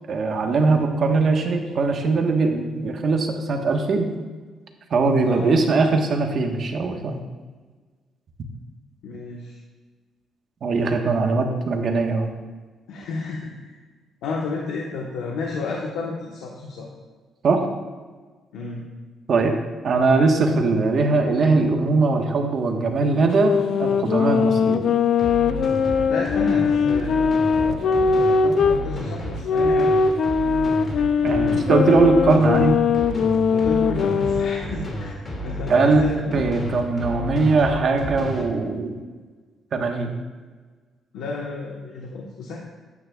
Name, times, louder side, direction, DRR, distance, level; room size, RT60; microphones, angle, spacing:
voice 1, 0.1-4.1 4.9-7.2 10.6-12.3 17.4-17.7 19.3-19.6 19.8-23.5 23.8-24.9 31.2-32.8 35.7-36.0 36.3-39.0 39.7-40.2, right 3 dB, 55° right, 3 dB, 1.3 m, -20 dB
voice 2, 5.2-5.6 9.0-9.6 12.9-13.7 14.2-16.9 18.5-18.8 26.1-30.0 33.5-35.2 35.4-36.4 41.1-42.6, left 3 dB, 85° left, -2 dB, 1.2 m, -31 dB
sound 1, 23.3-28.8 29.4-34.6, left 5 dB, 65° left, 0.5 m, -20 dB
sound 2, 25.2-38.4, equal, 40° left, 2.4 m, -31 dB
12.5 x 9.8 x 2.4 m, 1.4 s
cardioid pair, 90°, 0 cm